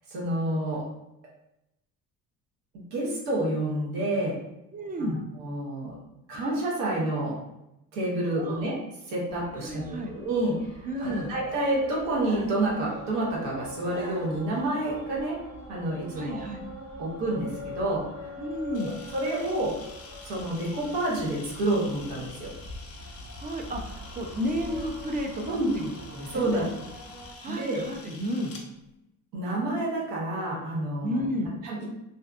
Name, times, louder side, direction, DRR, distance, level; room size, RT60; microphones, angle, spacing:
voice 1, 0.1-0.9 2.7-4.4 5.0-6.0 6.3-7.4 7.9-8.8 9.1-15.4 15.7-16.4 17.0-18.3 18.7-19.8 20.2-22.5 25.5-25.7 26.3-26.7 27.5-27.8 29.3-31.2 31.6-31.9, right 1 dB, 85° right, -4 dB, 0.8 m, -29 dB
voice 2, 4.7-5.2 8.4-8.7 9.6-10.1 10.8-11.3 16.1-16.6 18.4-18.9 23.4-26.7 27.4-28.5 31.0-31.5, equal, 25° right, 2 dB, 0.3 m, -32 dB
sound 1, 9.3-27.3, left 1 dB, 45° right, 1.1 m, -43 dB
sound 2, 10.9-11.5 12.2-13.1 13.7-14.8, right 1 dB, 70° right, 1.3 m, -44 dB
Camera, 18.7-28.6, left 3 dB, 40° left, 0.6 m, -48 dB
2.6 x 2.2 x 2.4 m, 0.89 s
cardioid pair, 105°, 35 cm